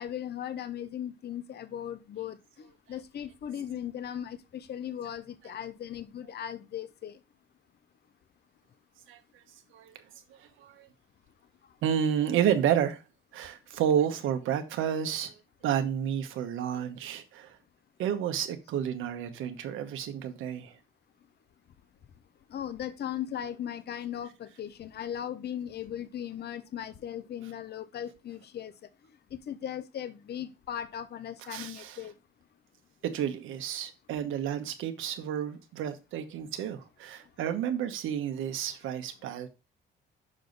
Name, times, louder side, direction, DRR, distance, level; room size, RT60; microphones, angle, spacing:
voice 1, 0.0-7.2 22.5-28.7 29.5-32.1, left 10 dB, 55° left, 0.8 m, -38 dB
voice 2, 11.8-13.0 13.3-15.3 15.6-17.6 18.0-20.7 31.5-32.0 33.0-39.5, right 9 dB, 85° right, 1.1 m, -30 dB
6.4 x 5.1 x 3.9 m
cardioid pair, 90°, 20 cm